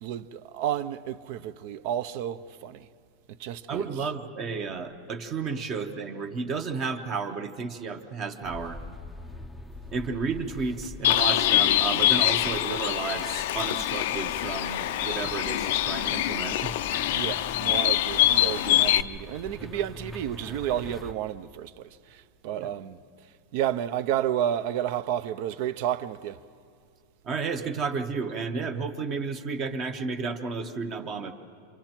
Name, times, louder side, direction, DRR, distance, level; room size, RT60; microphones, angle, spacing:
voice 1, 0.0-2.9 3.3-3.9 17.1-23.0 23.5-26.4, right 10 dB, 50° right, 0.6 m, -31 dB
voice 2, 3.7-8.8 9.9-16.7 22.5-22.7 27.2-31.3, right 4 dB, 25° right, 0.9 m, -32 dB
sound 1, 8.4-21.1, left 2 dB, ahead, 0.6 m, -43 dB
Bird, 11.0-19.0, left 13 dB, 60° left, 0.4 m, -24 dB
28.0 x 25.5 x 4.5 m
supercardioid pair, 170°, 0 cm